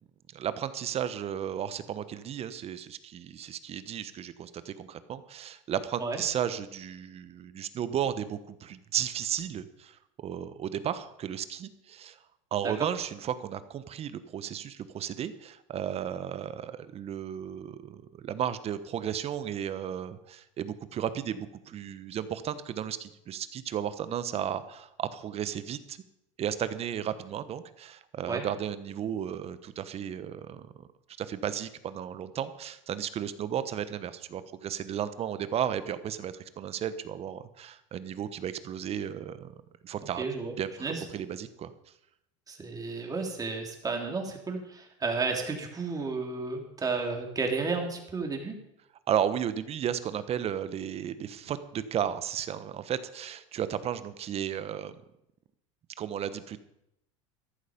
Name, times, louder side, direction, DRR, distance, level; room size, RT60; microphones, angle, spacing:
voice 1, 0.3-12.2 12.5-26.0 26.4-30.9 31.2-39.5 39.8-40.3 40.6-41.7 49.1-54.9 56.0-56.6, right 9 dB, 40° right, 13 dB, 1.2 m, -34 dB
voice 2, 40.2-40.5 40.8-41.0 42.5-48.5, right 4 dB, 20° right, 3 dB, 3.4 m, -32 dB
14.5 x 11.5 x 5.3 m, 0.80 s
hypercardioid pair, 95°, 16 cm